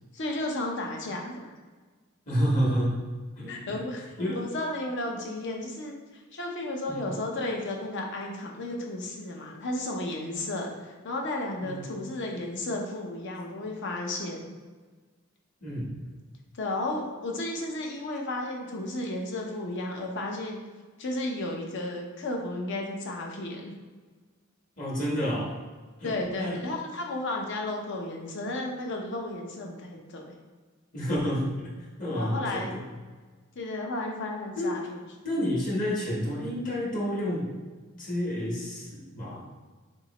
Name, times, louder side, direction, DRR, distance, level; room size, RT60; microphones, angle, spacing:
voice 1, 0.1-1.5 3.5-14.5 16.5-20.6 21.0-23.7 26.0-30.3 32.1-32.9 33.5-34.8, left 2 dB, 60° left, 1 dB, 0.8 m, -33 dB
voice 2, 2.3-3.0 3.4-3.6 4.2-4.4 6.9-7.1 11.6-11.9 15.6-15.9 24.8-25.5 26.0-26.6 30.9-31.7 32.0-32.8 34.6-34.8 35.2-37.5 38.0-39.4, equal, 40° left, -4 dB, 1.2 m, -29 dB
4.2 x 3.5 x 2.9 m, 1.4 s
head